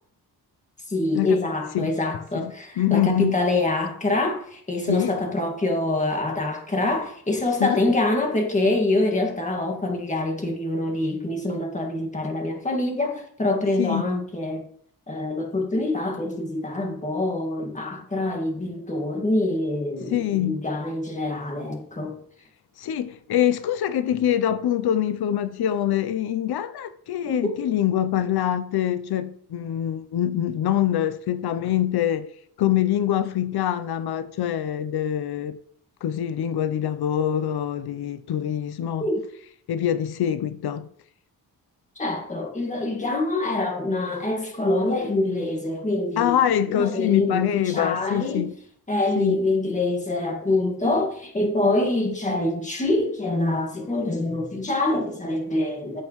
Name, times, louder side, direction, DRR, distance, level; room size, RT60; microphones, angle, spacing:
voice 1, 0.9-14.6 15.1-22.2 27.3-27.6 39.0-39.2 42.0-46.3 46.7-48.5 48.9-56.0, left 2 dB, 20° left, 1.8 m, -25 dB
voice 2, 2.3-3.4 4.9-5.1 7.6-7.8 13.8-14.1 20.1-20.6 22.8-32.3 32.6-35.6 36.0-39.1 39.7-40.9 46.2-48.5 49.1-49.4, left 11 dB, 85° left, 0.6 m, -24 dB
14.5 x 5.3 x 3.1 m
wide cardioid pair, 135°, 37 cm